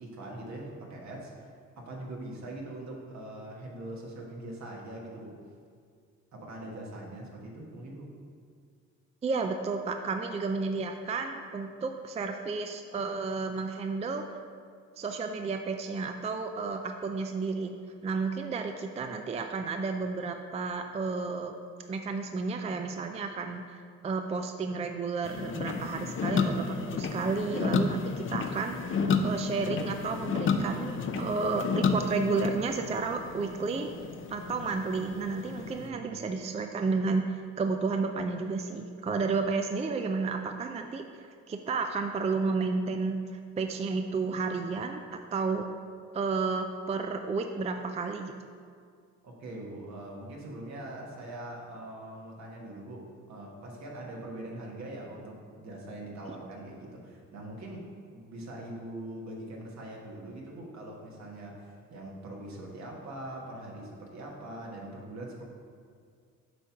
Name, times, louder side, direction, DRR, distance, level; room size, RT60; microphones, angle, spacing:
voice 1, 0.0-5.4 6.3-8.1 35.7-36.2 49.2-65.4, right 1 dB, 65° right, -1 dB, 1.5 m, -42 dB
voice 2, 9.2-14.3 15.0-17.7 18.0-21.5 21.9-33.9 34.3-43.2 43.6-45.7 46.1-48.3, right 4 dB, 20° right, 5 dB, 0.4 m, -32 dB
sound 1, 25.2-35.9, left 4 dB, 40° left, 0.5 m, -31 dB
7.9 x 3.1 x 5.8 m, 2.1 s
cardioid pair, 90°, 30 cm